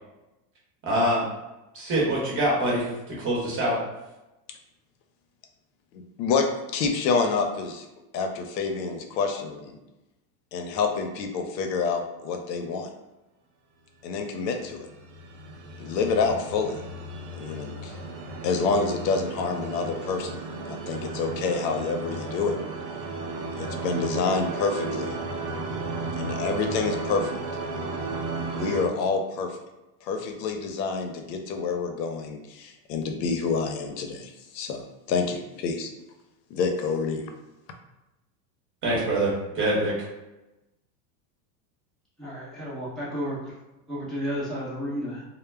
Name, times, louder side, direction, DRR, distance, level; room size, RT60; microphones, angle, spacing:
voice 1, 0.8-1.2 1.7-3.8 38.8-39.9, right 1 dB, 25° right, -5 dB, 1.0 m, -25 dB
voice 2, 5.9-6.5 6.7-7.9 8.1-9.8 10.5-12.9 14.0-14.9 15.8-16.7 17.4-18.0 18.4-22.6 23.6-25.2 26.2-27.3 28.5-29.6 30.0-35.9 36.5-37.3, left 4 dB, 80° left, 5 dB, 0.6 m, -28 dB
sound 1, 14.5-28.9, right 3 dB, 85° right, 0.6 m, -34 dB
voice 3, 42.2-43.5 43.9-45.3, equal, ahead, -9 dB, 0.6 m, -32 dB
2.1 x 2.0 x 3.3 m, 0.99 s
supercardioid pair, 135°, 50 cm